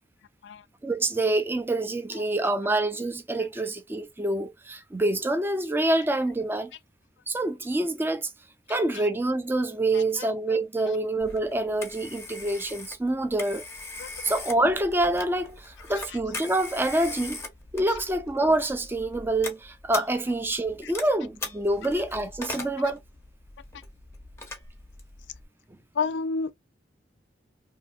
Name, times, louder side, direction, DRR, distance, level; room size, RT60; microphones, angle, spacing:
voice 1, 0.8-6.7 7.3-8.3 8.7-13.6 14.2-17.4 17.7-23.0, right 2 dB, 10° right, 0.4 m, -26 dB
voice 2, 9.9-10.6 10.8-11.0 14.0-14.1 20.8-20.9 22.6-22.7 25.9-26.5, left 4 dB, 75° left, 0.4 m, -31 dB
Telephone, 11.2-25.4, left 3 dB, 15° left, 0.7 m, -41 dB
2.7 x 2.6 x 2.3 m
head